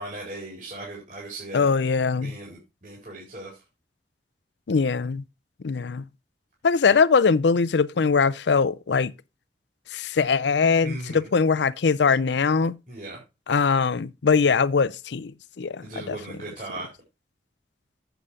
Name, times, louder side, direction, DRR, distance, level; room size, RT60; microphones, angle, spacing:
voice 1, 0.0-1.7 2.1-3.5 6.9-7.0 10.8-11.3 12.9-13.2 15.8-16.9, right 2 dB, 45° right, 4.2 m, -38 dB
voice 2, 1.5-2.3 4.7-5.2 5.6-6.0 6.6-9.1 9.9-12.8 13.5-15.3 15.6-16.2, left 5 dB, 85° left, 0.5 m, -21 dB
8.1 x 7.6 x 4.9 m
head